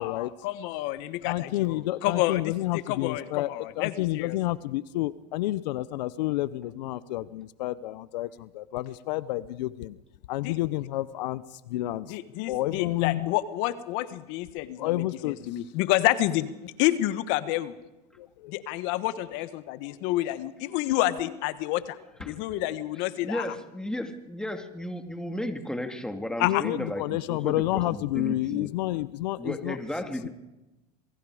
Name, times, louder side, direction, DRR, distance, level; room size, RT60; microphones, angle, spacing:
voice 1, 0.0-4.4 10.4-10.6 12.1-17.7 18.5-22.0 22.2-23.5 26.4-26.6, left 15 dB, 65° left, 14 dB, 1.3 m, -29 dB
voice 2, 1.2-3.5 3.8-10.0 10.3-11.4 11.7-12.2 12.5-13.3 14.8-15.4 18.2-18.5 26.4-29.8, left 16 dB, 80° left, 18 dB, 0.8 m, -30 dB
voice 3, 23.2-28.7 29.4-30.3, left 1 dB, 5° left, 6 dB, 2.5 m, -34 dB
27.5 x 22.5 x 5.0 m, 0.99 s
supercardioid pair, 105°, 21 cm